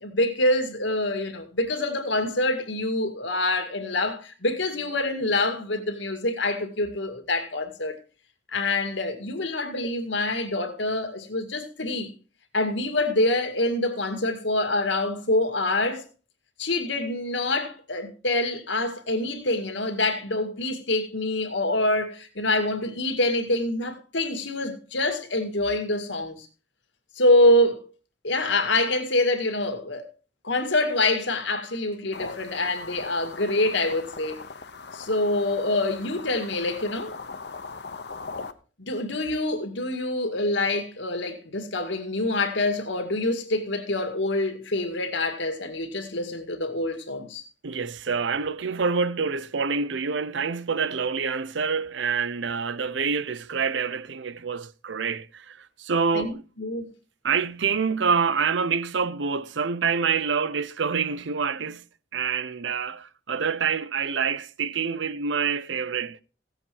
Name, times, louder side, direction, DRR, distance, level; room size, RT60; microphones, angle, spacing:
voice 1, 0.0-7.9 8.5-12.1 12.5-16.0 16.6-26.5 27.2-27.8 28.2-30.1 30.4-34.4 34.9-37.2 38.8-47.4 56.1-56.3 56.6-56.9, left 2 dB, 75° left, 2.1 m, -26 dB
sound 1, 32.1-38.5, left 4 dB, 60° left, 0.9 m, -40 dB
voice 2, 47.6-56.4 57.2-61.9 62.1-66.2, right 5 dB, 75° right, 0.6 m, -27 dB
16.5 x 8.0 x 4.5 m
head